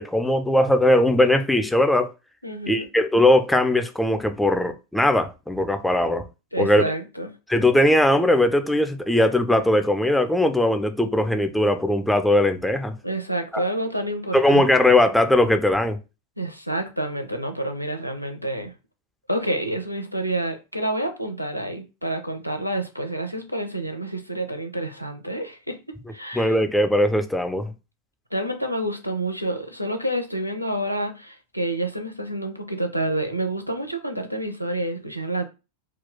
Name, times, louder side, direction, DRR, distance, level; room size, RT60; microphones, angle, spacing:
voice 1, 0.0-2.1 2.7-6.3 6.6-6.8 7.5-12.9 13.5-13.6 14.3-16.0 26.3-27.7, left 1 dB, 5° left, 0.4 m, -19 dB
voice 2, 2.4-2.9 6.5-7.3 13.0-14.6 16.4-18.7 19.3-26.6 28.3-35.5, right 1 dB, 90° left, 0.5 m, -28 dB
2.3 x 2.1 x 3.8 m
figure-of-eight pair, 90°, 0 cm